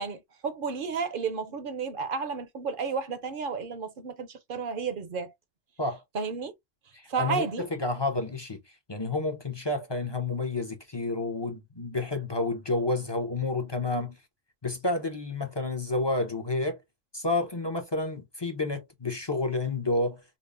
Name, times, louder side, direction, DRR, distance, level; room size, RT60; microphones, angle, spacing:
voice 1, 0.0-5.3 6.1-6.5 7.1-7.6, right 5 dB, 50° right, 0.7 m, -32 dB
voice 2, 6.9-8.6 8.9-14.2 14.6-16.8 17.1-20.4, left 2 dB, 30° left, 0.5 m, -30 dB
5.2 x 2.0 x 2.4 m
omnidirectional pair, 1.3 m